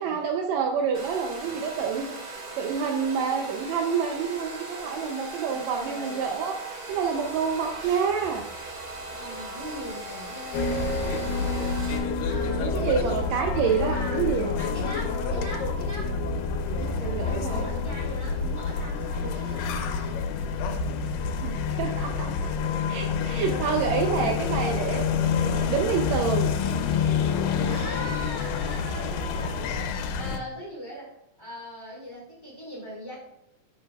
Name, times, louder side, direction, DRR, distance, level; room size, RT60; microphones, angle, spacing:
voice 1, 0.0-8.7 12.6-15.0 16.8-17.7 21.4-22.5 22.9-25.1 25.5-26.5, right 6 dB, 90° right, 3 dB, 1.5 m, -28 dB
Domestic sounds home sounds, 0.9-12.0, right 1 dB, 40° right, 1.6 m, -39 dB
voice 2, 5.5-6.3 9.1-11.8 12.2-13.2 13.9-14.3 14.6-16.1 17.2-20.2 21.9-22.2 27.7-33.2, equal, 10° left, -4 dB, 2.7 m, -41 dB
sound 1, 6.9-20.3, right 1 dB, 55° left, 0.5 m, -49 dB
sound 2, 10.5-30.4, left 5 dB, 90° left, 2.5 m, -28 dB
11.0 x 7.4 x 2.3 m, 0.86 s
omnidirectional pair, 3.8 m